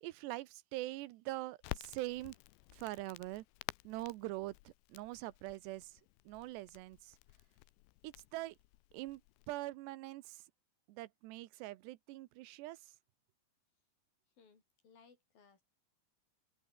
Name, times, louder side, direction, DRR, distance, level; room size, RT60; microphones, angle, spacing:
voice 1, 0.0-2.4 2.7-3.5 3.8-6.0 6.3-7.2 8.0-8.6 8.9-9.2 9.5-10.4 10.9-12.9, right 18 dB, 80° right, 2.9 m, -43 dB
Crackle, 1.6-9.6, left 21 dB, 85° left, 2.9 m, -51 dB
voice 2, 14.4-15.6, left 5 dB, 50° left, 6.6 m, -64 dB
open air
omnidirectional pair, 5.2 m